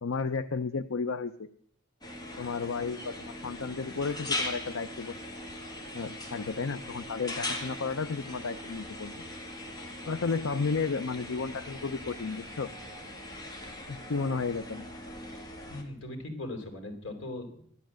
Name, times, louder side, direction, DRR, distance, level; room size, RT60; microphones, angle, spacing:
voice 1, 0.0-1.5 2.4-5.1 5.9-9.2 10.1-12.7 13.9-14.8, left 4 dB, 90° left, 10 dB, 0.6 m, -33 dB
sound 1, 2.0-15.8, left 1 dB, 20° left, 2.4 m, -40 dB
voice 2, 15.3-17.6, left 2 dB, 65° left, 4 dB, 3.9 m, -40 dB
13.0 x 12.0 x 7.6 m, 0.63 s
head